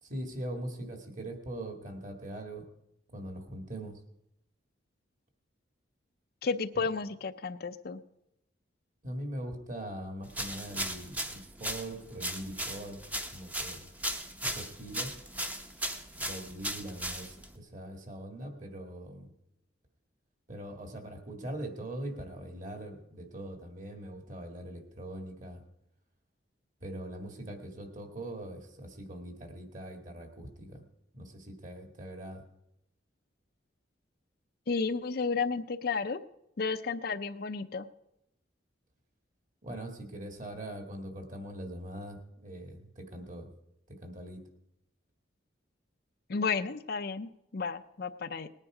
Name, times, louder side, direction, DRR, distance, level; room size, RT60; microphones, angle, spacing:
voice 1, 0.0-2.7 3.1-4.0 6.8-6.9 9.0-13.0 13.3-13.9 14.4-15.1 16.1-19.3 20.5-25.6 26.8-30.8 31.1-32.4 39.6-43.5 43.9-44.4, right 1 dB, 40° right, 5 dB, 1.8 m, -42 dB
voice 2, 6.4-8.0 34.7-36.2 36.6-37.9 46.3-48.5, left 4 dB, 50° left, 10 dB, 0.5 m, -32 dB
sound 1, 10.3-17.5, right 1 dB, 10° right, 0.7 m, -37 dB
19.0 x 9.8 x 4.9 m, 0.83 s
head